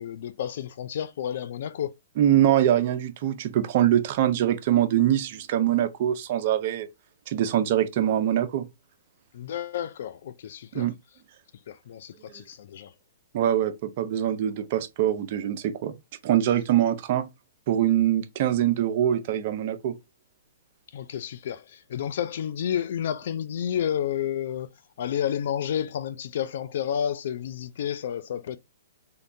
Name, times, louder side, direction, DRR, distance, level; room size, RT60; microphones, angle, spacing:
voice 1, 0.0-1.9 9.3-10.9 11.7-12.9 20.9-24.7 25.0-28.6, left 9 dB, 60° left, 0.3 m, -30 dB
voice 2, 2.2-6.9 7.3-8.7 10.7-10.9 13.3-15.9 16.2-17.3 17.7-20.0, right 11 dB, 45° right, 0.5 m, -23 dB
3.6 x 2.3 x 2.6 m
hypercardioid pair, 150°, 0 cm